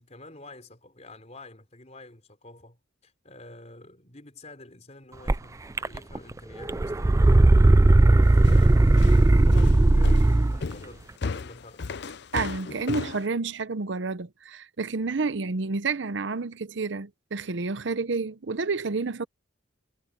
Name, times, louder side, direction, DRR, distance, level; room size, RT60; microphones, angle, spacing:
voice 1, 0.0-11.9, left 2 dB, 35° left, 4.4 m, -48 dB
sound 1, 5.3-5.4 5.8-6.3 6.6-10.6, right 2 dB, 15° right, 0.3 m, -17 dB
sound 2, 8.4-13.2, left 4 dB, 60° left, 0.6 m, -34 dB
voice 2, 12.3-19.3, right 4 dB, 65° right, 0.7 m, -29 dB
head